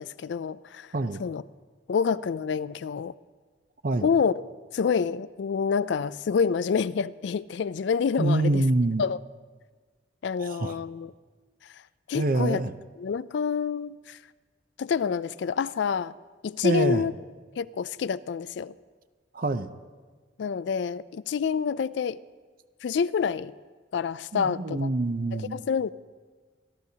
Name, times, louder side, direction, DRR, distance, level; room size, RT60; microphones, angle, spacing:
voice 1, 0.0-0.9 1.2-1.4 1.9-3.1 4.0-4.3 4.7-8.6 9.0-9.2 10.2-11.1 12.1-12.6 13.0-14.2 14.8-16.1 16.4-17.1 17.6-18.7 20.4-22.2 22.8-23.5 23.9-24.9 25.3-25.9, left 6 dB, 65° left, 0.3 m, -27 dB
voice 2, 8.2-9.0 10.4-10.8 12.1-12.7 16.6-17.0 19.3-19.7 24.3-25.6, right 2 dB, 50° right, 0.6 m, -26 dB
27.0 x 12.0 x 2.8 m
head